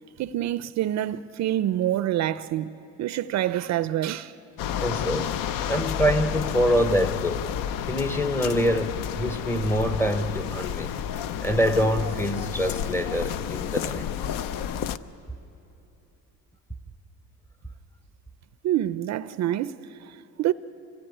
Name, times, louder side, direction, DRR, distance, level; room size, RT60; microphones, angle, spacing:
voice 1, 0.2-4.3 18.6-20.5, right 12 dB, 50° right, 0.5 m, -27 dB
sound 1, 4.6-15.0, left 9 dB, 65° left, 0.7 m, -30 dB
voice 2, 4.8-5.4 5.7-7.4 7.9-10.9 11.4-14.0, equal, 5° left, 0.7 m, -25 dB
25.5 x 16.5 x 9.9 m
cardioid pair, 150°, 35 cm